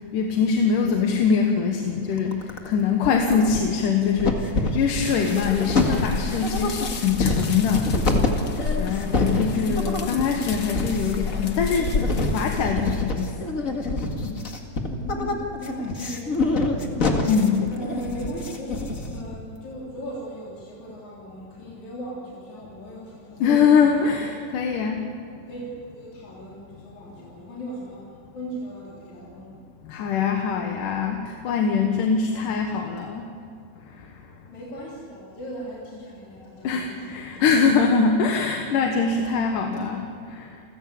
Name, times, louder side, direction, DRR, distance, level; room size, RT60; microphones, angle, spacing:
voice 1, 0.1-7.9 8.8-12.0 12.2-13.3 14.2-14.4 17.3-17.6 23.4-25.0 29.9-33.2 36.6-40.1 40.3-40.5, left 6 dB, 85° left, 3 dB, 3.0 m, -23 dB
sound 1, 2.2-2.7 3.0-3.9 4.2-19.4, left 2 dB, 30° left, 2.0 m, -26 dB
sound 2, 5.0-12.6, left 5 dB, 45° left, 1.3 m, -32 dB
voice 2, 9.2-9.9 14.8-17.3 17.7-24.3 25.1-25.7 25.9-28.0 28.3-29.6 34.5-37.4, equal, 65° left, -5 dB, 5.0 m, -38 dB
29.0 x 16.0 x 8.5 m, 2.5 s
omnidirectional pair, 3.6 m